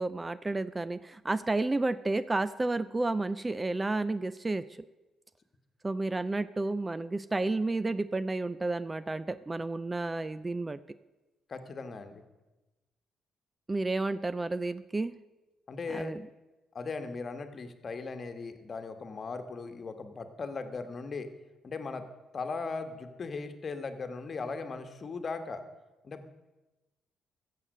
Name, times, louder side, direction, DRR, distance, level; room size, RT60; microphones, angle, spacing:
voice 1, 0.0-4.7 5.8-10.8 13.7-15.1 15.9-16.2, right 2 dB, 20° right, 16 dB, 0.4 m, -31 dB
voice 2, 11.5-12.2 15.7-16.1 16.7-21.3 21.6-22.0 22.3-25.6 26.0-26.2, left 4 dB, 40° left, 8 dB, 1.3 m, -38 dB
14.5 x 7.5 x 6.5 m, 1.1 s
cardioid pair, 90°, 0 cm